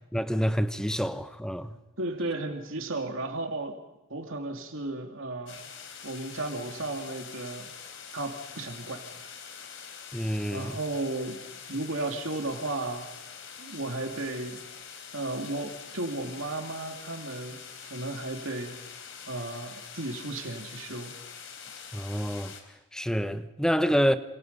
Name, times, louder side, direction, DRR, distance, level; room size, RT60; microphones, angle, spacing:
voice 1, 0.1-1.7 10.1-10.8 21.9-22.5 22.9-24.2, equal, 5° left, 0.8 m, -27 dB
voice 2, 1.7-3.8 4.1-5.6 6.0-7.7 8.1-9.7 10.5-11.4 11.7-13.1 13.6-14.6 15.1-18.7 19.3-21.1, right 2 dB, 70° right, 2.6 m, -34 dB
sound 1, 5.5-22.6, left 7 dB, 60° left, 3.5 m, -45 dB
27.5 x 27.5 x 5.4 m
head